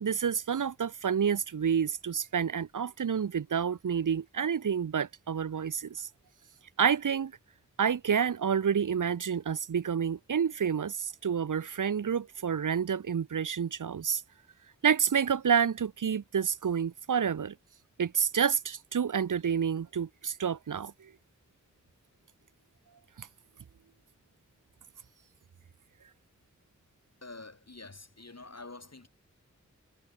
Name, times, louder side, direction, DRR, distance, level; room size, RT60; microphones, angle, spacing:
voice 1, 0.0-6.1 6.8-7.3 7.8-14.2 14.8-17.5 18.0-21.1 23.2-23.3, right 7 dB, 85° right, 0.7 m, -29 dB
voice 2, 27.2-29.1, left 3 dB, 55° left, 7.0 m, -47 dB
wide cardioid pair, 55°, 30 cm